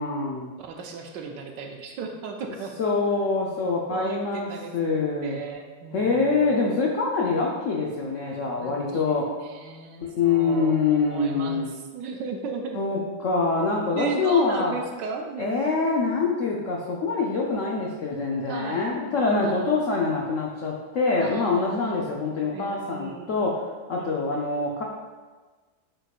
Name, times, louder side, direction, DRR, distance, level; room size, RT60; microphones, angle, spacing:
voice 1, 0.0-0.5 2.8-5.4 5.9-9.3 10.0-11.8 12.7-14.7 15.4-23.6 23.9-24.8, left 4 dB, 80° left, -2 dB, 0.7 m, -25 dB
voice 2, 0.6-2.7 3.9-6.6 8.6-12.8 13.9-15.8 18.5-18.9 19.4-19.7 21.2-22.0 22.5-23.3 24.0-24.2, right 5 dB, 70° right, 3 dB, 1.2 m, -36 dB
8.9 x 4.5 x 2.4 m, 1.4 s
omnidirectional pair, 2.2 m